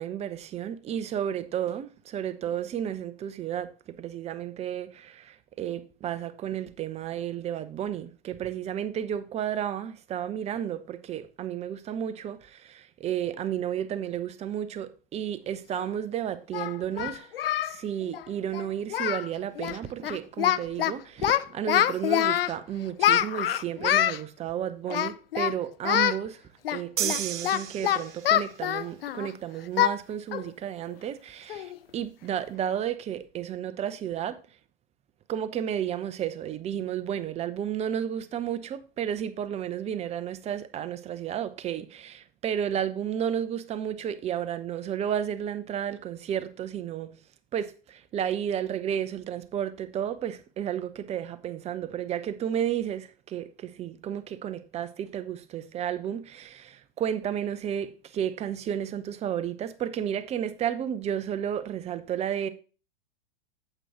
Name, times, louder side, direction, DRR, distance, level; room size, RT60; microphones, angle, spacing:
voice 1, 0.0-17.3 17.6-26.4 26.7-34.4 35.3-47.2 47.5-62.5, right 9 dB, 20° right, 0.6 m, -32 dB
Singing, 15.7-15.8 16.5-17.8 18.0-18.2 18.5-18.7 18.9-19.3 19.6-19.8 20.0-20.9 21.2-22.5 23.0-24.2 24.9-25.5 25.9-26.2 26.7-29.3 29.8-30.0 30.3-30.5 30.9-31.0 31.5-31.8, left 11 dB, 75° left, 0.5 m, -25 dB
sound 1, 27.0-28.5, right 10 dB, 55° right, 0.9 m, -32 dB
9.0 x 7.8 x 2.9 m
figure-of-eight pair, 100°, 29 cm